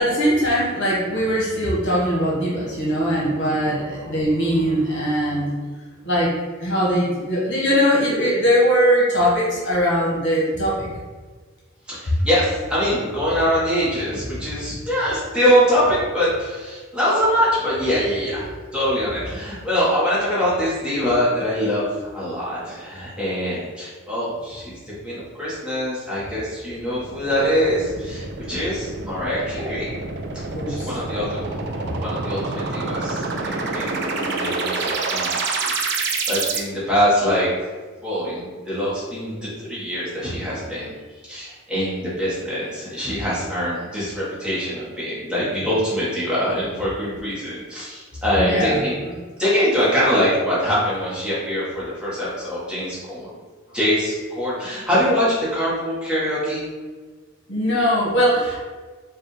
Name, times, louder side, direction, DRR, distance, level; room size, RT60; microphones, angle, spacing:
voice 1, 0.0-5.5 6.0-6.3 6.6-10.9 30.5-31.0 48.3-49.2 57.5-58.6, equal, 55° left, -5 dB, 1.2 m, -21 dB
voice 2, 11.9-18.4 18.7-29.9 30.3-31.4 31.7-37.5 38.0-40.9 41.2-49.0 49.4-53.3 53.7-56.6, equal, 5° right, -9 dB, 1.2 m, -23 dB
sound 1, 26.7-36.6, right 3 dB, 50° right, 0.4 m, -28 dB
5.1 x 2.4 x 3.2 m, 1.4 s
head